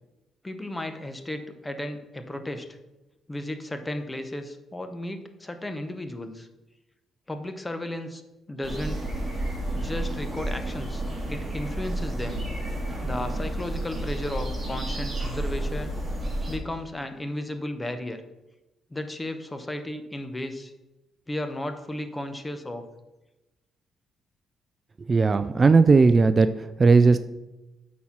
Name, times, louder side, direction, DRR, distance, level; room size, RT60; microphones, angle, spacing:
voice 1, 0.4-2.8 3.3-6.5 7.3-8.2 8.5-9.0 9.7-11.0 11.3-12.4 13.0-16.0 16.5-18.2 18.9-20.7 21.3-22.8, left 1 dB, 15° left, 8 dB, 0.9 m, -34 dB
sound 1, 8.6-16.6, right 1 dB, 15° right, 2.9 m, -31 dB
voice 2, 25.0-27.2, right 4 dB, 35° right, 12 dB, 0.3 m, -18 dB
8.3 x 4.3 x 6.0 m, 1.0 s
cardioid pair, 90°, 0 cm